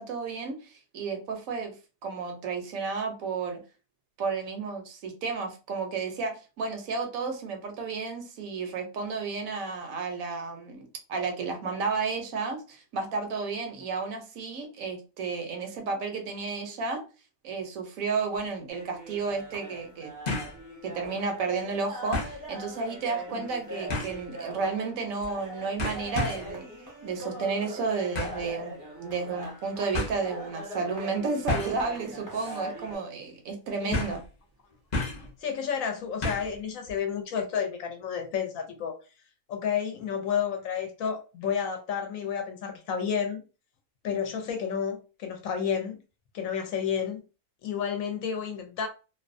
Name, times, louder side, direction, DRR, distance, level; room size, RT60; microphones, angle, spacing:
voice 1, 0.0-1.7 2.0-3.6 4.2-17.0 17.4-20.1 20.8-26.7 27.0-28.7 29.0-34.2, right 4 dB, 70° right, 1.0 m, -32 dB
sound 1, 18.3-18.4 20.3-20.6 21.0-21.1 22.1-22.4 23.9-24.2 25.2-25.4 25.8-26.5 28.1-28.5 29.4-29.5 29.9-30.2 31.5-31.8 32.3-32.6 32.8-32.9 33.9-34.3 34.9-35.3 36.2-36.6 36.9-37.0, left 2 dB, 45° left, 0.5 m, -32 dB
sound 2, 18.7-33.0, right 1 dB, 20° right, 0.6 m, -41 dB
voice 2, 35.4-38.9 39.5-43.4 44.0-46.0 46.3-47.2 47.6-48.9, left 7 dB, 70° left, 0.9 m, -31 dB
2.6 x 2.2 x 2.4 m
omnidirectional pair, 1.6 m